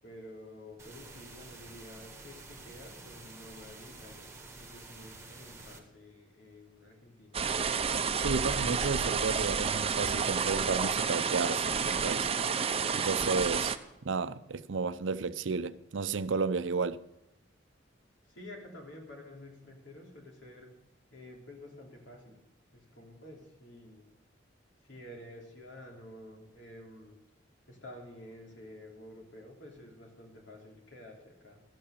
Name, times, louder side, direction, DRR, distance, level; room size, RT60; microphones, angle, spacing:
voice 1, 0.0-7.5 18.2-20.8 21.1-22.4 22.7-24.1 24.8-27.2 27.7-31.6, left 1 dB, 80° left, 3.3 m, -50 dB
sound 1, 0.8-5.8, right 3 dB, 15° right, 1.6 m, -49 dB
sound 2, 7.3-13.8, right 6 dB, 30° right, 0.6 m, -30 dB
voice 2, 8.2-12.3 12.9-13.8 14.0-17.0, right 4 dB, 85° right, 0.6 m, -32 dB
13.0 x 8.6 x 6.7 m
head